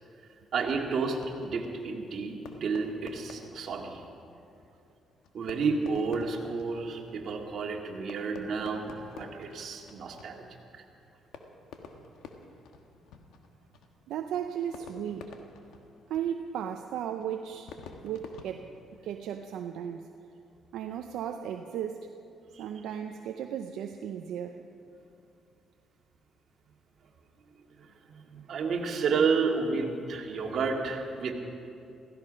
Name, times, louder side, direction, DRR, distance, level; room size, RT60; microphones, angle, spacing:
voice 1, 0.5-4.0 5.3-10.4 10.7-10.8 22.5-22.6 27.8-31.3, right 4 dB, 60° right, 1 dB, 2.1 m, -31 dB
Fireworks, 0.6-19.4, left 5 dB, 85° left, 1.3 m, -51 dB
voice 2, 14.1-15.3 16.1-17.7 18.0-18.7 19.0-20.1 20.7-22.2 22.6-24.6, right 9 dB, 85° right, 5 dB, 0.7 m, -35 dB
16.5 x 16.0 x 5.3 m, 2.6 s
cardioid pair, 90°, 0 cm